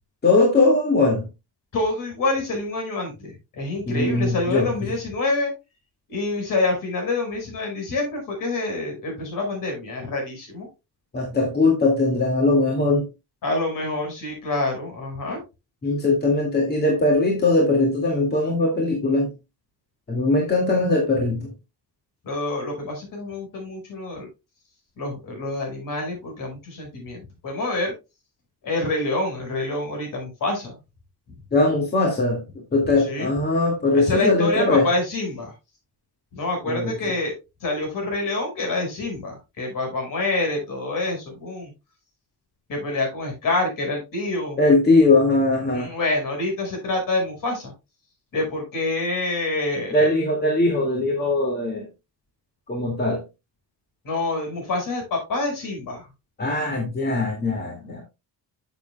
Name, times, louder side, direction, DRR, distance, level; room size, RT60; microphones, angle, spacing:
voice 1, 0.2-1.3 3.9-4.9 11.1-13.1 15.8-19.4 20.1-21.5 31.5-34.9 36.7-36.9 44.6-45.9 49.9-51.9 52.7-53.2 56.4-58.0, left 2 dB, 25° left, 2.1 m, -20 dB
voice 2, 1.7-5.5 6.1-10.7 13.4-15.4 22.2-24.3 25.0-27.9 28.6-30.8 33.0-33.3 33.9-35.5 36.3-37.3 37.6-41.7 42.7-44.6 45.7-47.7 48.3-50.1 54.0-56.1, left 2 dB, 55° left, 5.1 m, -27 dB
10.5 x 7.4 x 2.2 m
cardioid pair, 160°, 38 cm